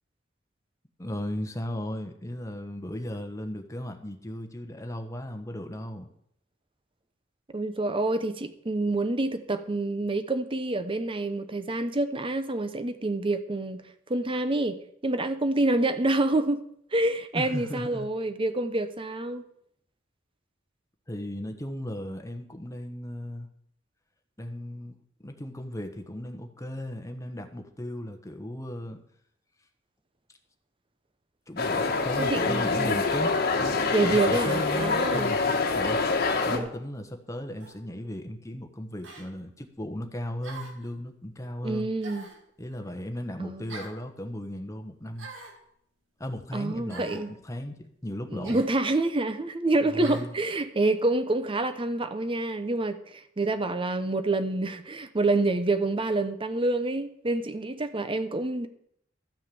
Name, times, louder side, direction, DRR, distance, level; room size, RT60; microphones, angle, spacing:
voice 1, 1.0-6.1 17.3-18.1 21.1-23.5 24.4-25.0 25.2-29.0 31.5-41.9 42.6-45.3 46.2-48.6 49.9-50.3, left 1 dB, 15° left, 1.1 m, -36 dB
voice 2, 7.5-13.8 14.1-16.6 16.9-19.4 32.2-33.0 33.9-35.4 36.5-36.7 41.6-42.3 43.4-43.7 46.5-47.3 48.3-58.7, right 2 dB, 25° right, 0.8 m, -27 dB
sound 1, 31.6-36.6, left 4 dB, 50° left, 1.4 m, -26 dB
sound 2, 37.6-37.8 39.0-39.3 40.4-40.9 42.0-42.4 43.7-44.0 45.2-45.6 46.9-47.3 48.4-48.7 50.0-50.3, right 3 dB, 75° right, 2.1 m, -43 dB
13.0 x 6.4 x 6.9 m
head